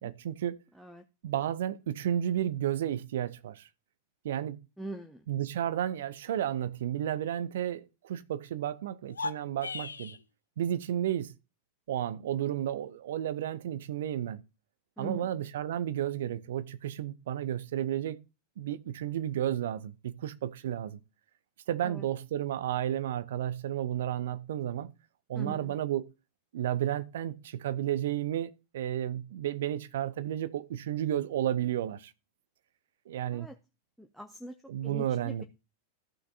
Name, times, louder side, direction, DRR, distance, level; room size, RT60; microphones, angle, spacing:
voice 1, 0.0-0.6 1.2-3.7 4.2-4.6 5.3-10.2 10.6-11.3 11.9-14.4 15.0-18.2 18.6-21.0 21.7-24.9 25.3-26.1 26.5-32.1 33.1-33.5 34.7-35.4, right 11 dB, 60° right, 0.7 m, -32 dB
voice 2, 4.8-5.2 15.0-15.4 21.8-22.1 25.3-25.7 33.3-33.5 34.0-34.6 34.8-35.4, right 1 dB, ahead, 0.7 m, -42 dB
sound 1, 9.0-10.2, left 4 dB, 75° left, 0.5 m, -37 dB
14.5 x 6.0 x 2.7 m
figure-of-eight pair, 90°, 0 cm